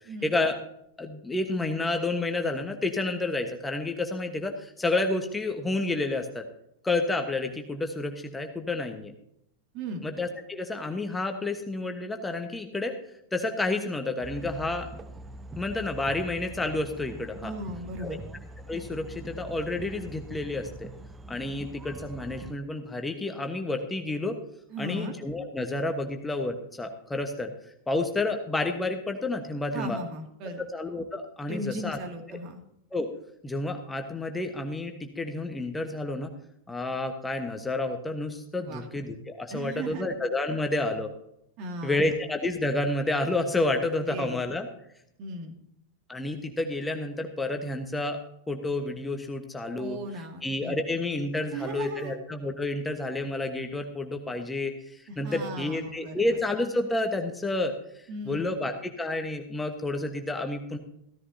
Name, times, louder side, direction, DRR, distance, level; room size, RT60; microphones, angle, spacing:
voice 1, 0.2-0.6 1.0-6.4 6.8-9.1 10.0-12.9 13.3-14.9 15.6-17.5 18.0-18.2 18.7-20.9 21.3-24.4 24.8-27.5 27.9-30.0 30.7-32.0 32.3-32.4 32.9-33.1 33.4-36.3 36.7-41.1 41.8-44.7 46.1-48.2 48.5-50.0 50.4-60.8, left 2 dB, 10° left, 5 dB, 1.2 m, -30 dB
sound 1, 14.2-22.5, right 2 dB, 15° right, 0.6 m, -43 dB
voice 2, 17.4-18.2 24.7-25.1 29.7-30.6 31.5-32.6 38.6-38.9 39.5-40.1 41.6-42.1 44.1-44.4 45.2-45.5 49.8-50.7 51.5-52.2 55.1-56.4 58.1-58.5, right 1 dB, 40° right, 4 dB, 2.3 m, -37 dB
16.0 x 14.0 x 2.8 m, 0.76 s
figure-of-eight pair, 90°, 0 cm